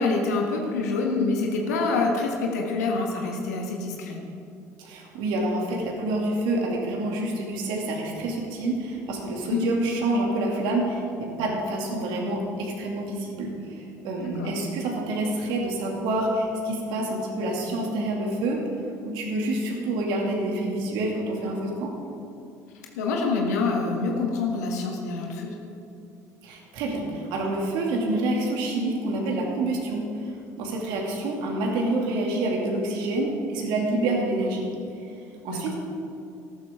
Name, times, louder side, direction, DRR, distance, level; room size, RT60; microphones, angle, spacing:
voice 1, 0.0-4.2 9.5-9.6 14.2-14.5 23.0-25.5 35.5-35.6, left 3 dB, 75° left, 1 dB, 1.6 m, -26 dB
voice 2, 4.8-18.6 19.0-21.9 26.4-34.7 35.4-35.7, right 2 dB, 65° right, -1 dB, 2.5 m, -27 dB
14.0 x 12.5 x 3.7 m, 2.5 s
figure-of-eight pair, 60°, 9 cm